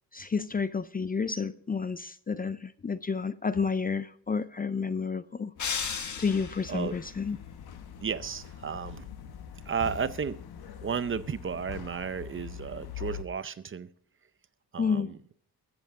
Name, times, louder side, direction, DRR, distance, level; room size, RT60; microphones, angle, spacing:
voice 1, 0.1-5.5 6.2-7.4 14.8-15.1, left 5 dB, 25° left, 0.5 m, -30 dB
sound 1, 5.6-13.2, left 9 dB, 70° left, 1.2 m, -43 dB
sound 2, 5.6-6.9, left 6 dB, 50° left, 1.6 m, -34 dB
voice 2, 8.0-9.1 9.7-10.4 10.8-13.9 14.7-15.2, right 6 dB, 35° right, 0.6 m, -33 dB
21.5 x 8.0 x 3.7 m
cardioid pair, 110°, 38 cm